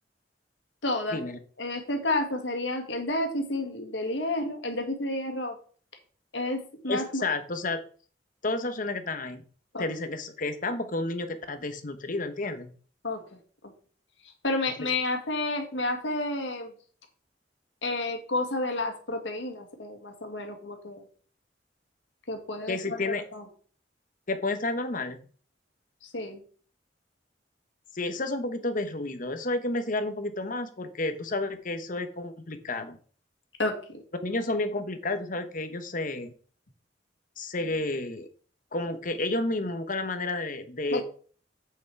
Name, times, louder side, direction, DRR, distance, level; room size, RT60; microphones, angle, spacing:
voice 1, 0.8-1.2 1.6-5.5 6.3-7.3 9.7-9.8 13.0-13.2 13.6-13.7 14.4-16.7 17.8-21.0 22.3-23.5 26.1-26.4 33.6-34.0 40.9-41.0, left 2 dB, 85° left, 5 dB, 1.9 m, -30 dB
voice 2, 6.9-7.8 8.4-9.4 9.8-12.7 22.7-23.2 24.3-25.2 27.9-33.0 34.2-36.3 37.4-38.3 38.7-41.0, left 2 dB, 45° left, 9 dB, 1.1 m, -31 dB
7.9 x 6.0 x 4.7 m, 0.44 s
head